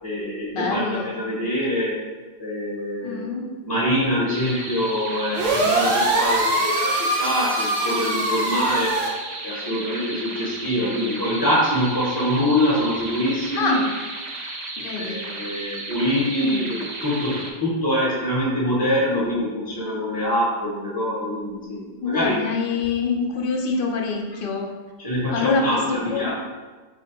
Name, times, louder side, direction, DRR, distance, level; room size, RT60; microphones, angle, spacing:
voice 1, 0.0-2.0 2.4-3.3 3.6-9.0 9.4-13.8 15.0-22.4 25.0-26.3, equal, 25° left, -7 dB, 0.8 m, -24 dB
voice 2, 0.5-1.1 3.0-3.5 13.6-13.9 14.8-15.2 16.4-16.8 22.0-24.7 25.3-26.3, left 4 dB, 60° left, 1 dB, 0.7 m, -25 dB
sound 1, 4.3-17.5, right 2 dB, 50° right, 0.6 m, -34 dB
sound 2, 5.3-9.1, right 1 dB, 85° right, 1.0 m, -23 dB
4.2 x 3.5 x 2.9 m, 1.3 s
omnidirectional pair, 1.1 m